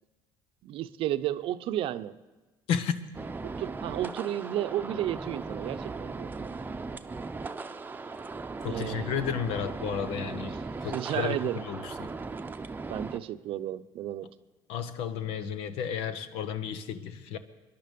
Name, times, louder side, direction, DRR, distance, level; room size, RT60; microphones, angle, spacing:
voice 1, 0.6-2.2 3.4-6.6 8.7-9.1 10.9-11.6 12.9-14.3, right 12 dB, 65° right, 11 dB, 0.7 m, -33 dB
sound 1, 3.1-13.2, right 3 dB, 20° right, 0.8 m, -38 dB
voice 2, 8.6-12.1 14.7-17.4, left 8 dB, 75° left, 12 dB, 1.0 m, -33 dB
24.5 x 11.0 x 5.2 m, 1.2 s
supercardioid pair, 80°, 10 cm